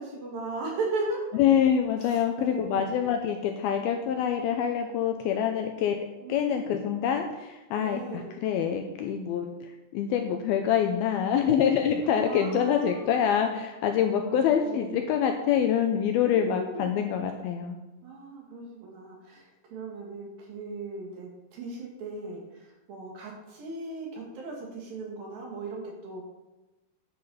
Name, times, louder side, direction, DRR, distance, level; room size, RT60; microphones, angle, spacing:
voice 1, 0.0-1.3 2.0-2.8 6.2-7.1 7.7-8.4 12.0-13.4 14.2-15.1 16.1-17.0 18.0-26.2, right 3 dB, 60° right, -1 dB, 3.7 m, -37 dB
voice 2, 1.3-17.8, left 8 dB, 80° left, 5 dB, 2.3 m, -26 dB
10.5 x 10.5 x 4.3 m, 1.1 s
omnidirectional pair, 5.0 m